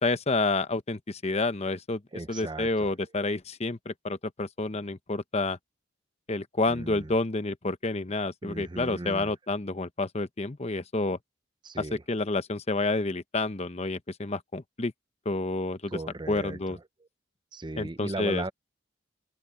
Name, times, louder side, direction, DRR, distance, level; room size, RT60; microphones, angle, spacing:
voice 1, 0.0-2.0 2.3-5.6 6.3-11.2 11.8-14.9 15.2-16.0 16.3-16.8 17.8-18.4, left 2 dB, 35° left, 0.9 m, -29 dB
voice 2, 2.1-2.9 6.7-7.1 8.4-9.3 11.6-12.0 15.9-16.8 17.5-18.5, right 2 dB, 25° right, 0.6 m, -37 dB
head